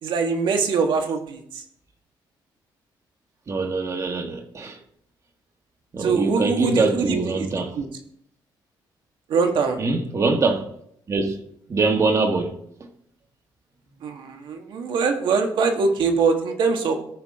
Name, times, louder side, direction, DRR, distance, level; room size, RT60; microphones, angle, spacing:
voice 1, 0.0-1.6 6.0-7.5 7.8-7.9 9.3-9.8 14.0-16.9, right 5 dB, 70° right, 1.9 m, -23 dB
voice 2, 3.5-4.8 5.9-7.8 9.8-10.6 11.1-11.4 11.7-12.6, right 3 dB, 35° right, 1.8 m, -23 dB
18.5 x 6.2 x 3.8 m
cardioid pair, 120°, 8 cm